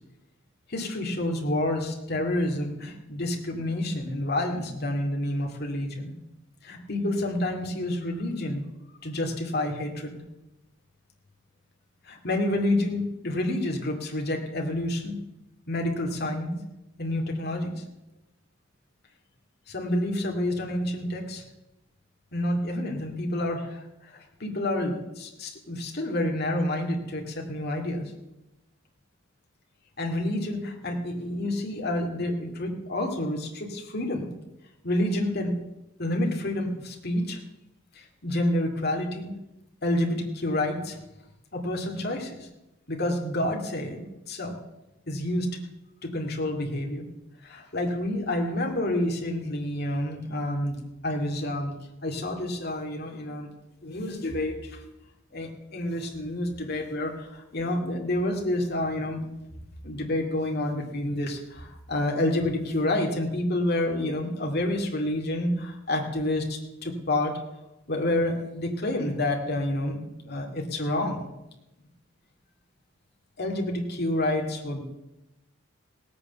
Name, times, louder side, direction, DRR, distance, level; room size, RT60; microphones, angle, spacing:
voice 1, 0.7-6.1 6.6-8.6 9.0-10.2 12.0-15.2 15.7-16.6 17.0-17.8 19.7-21.4 22.3-28.1 30.0-34.3 34.8-35.5 36.0-37.4 37.9-39.3 39.8-41.0 41.5-42.5 42.9-44.0 44.3-44.6 45.1-45.5 46.0-47.0 47.4-51.7 52.0-53.5 53.8-54.8 55.3-59.2 59.8-67.4 67.9-71.3 73.4-74.8, left 1 dB, 50° left, 1 dB, 2.5 m, -29 dB
17.5 x 8.6 x 7.0 m, 0.96 s
head